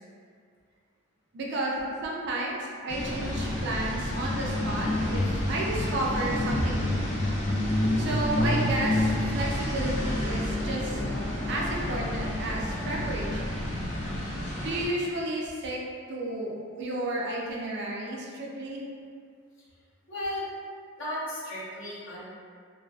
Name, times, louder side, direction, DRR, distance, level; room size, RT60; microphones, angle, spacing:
voice 1, 1.3-1.7 2.0-7.0 8.0-11.0 11.5-13.7 14.6-15.8 16.1-18.8, right 1 dB, 50° right, -3 dB, 0.4 m, -32 dB
sound 1, 2.9-14.9, left 1 dB, 35° left, 0.4 m, -29 dB
voice 2, 20.1-20.5 21.0-22.2, left 1 dB, 60° left, -9 dB, 0.8 m, -34 dB
2.4 x 2.4 x 2.3 m, 2.1 s
head